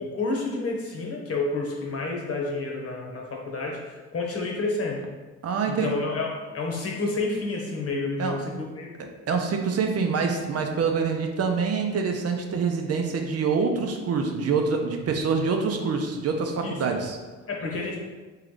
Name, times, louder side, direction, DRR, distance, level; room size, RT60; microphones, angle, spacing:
voice 1, 0.1-5.0 5.7-8.9 16.6-16.8 17.5-18.0, left 3 dB, 50° left, -1 dB, 1.1 m, -30 dB
voice 2, 5.4-5.9 8.2-8.4 9.0-17.2, right 5 dB, 55° right, 3 dB, 0.6 m, -26 dB
3.5 x 3.2 x 3.7 m, 1.3 s
cardioid pair, 90°, 30 cm